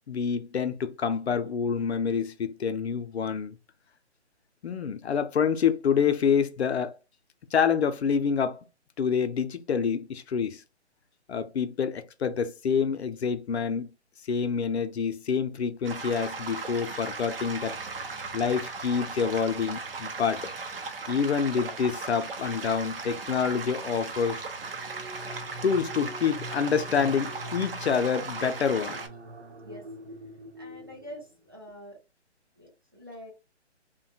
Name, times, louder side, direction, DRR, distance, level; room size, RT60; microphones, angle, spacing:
voice 1, 0.1-3.6 4.6-7.0 7.5-8.6 9.0-10.6 11.3-13.9 14.3-17.8 18.3-20.5 21.1-24.4 25.3-29.0, left 6 dB, 65° left, 0.6 m, -27 dB
sound 1, 15.8-29.1, right 4 dB, 55° right, 0.7 m, -37 dB
sound 2, 24.6-31.5, equal, 80° right, 1.0 m, -44 dB
voice 2, 30.6-32.0 32.6-33.3, left 1 dB, 20° right, 0.4 m, -45 dB
2.7 x 2.2 x 2.7 m
hypercardioid pair, 155°, 35 cm